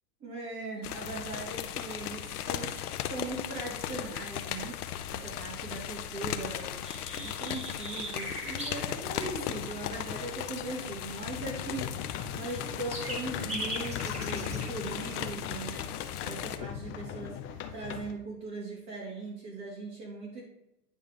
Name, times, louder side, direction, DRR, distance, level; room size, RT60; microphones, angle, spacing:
voice 1, 0.2-2.8 3.0-4.8 5.1-20.4, right 3 dB, 35° right, -5 dB, 2.8 m, -40 dB
sound 1, 0.8-16.6, left 10 dB, 75° left, 0.9 m, -37 dB
sound 2, 6.8-8.8 12.3-14.7, right 1 dB, 15° right, 2.2 m, -39 dB
sound 3, 9.1-18.1, left 8 dB, 25° left, 0.7 m, -40 dB
9.7 x 3.5 x 5.1 m, 0.89 s
hypercardioid pair, 125°, 46 cm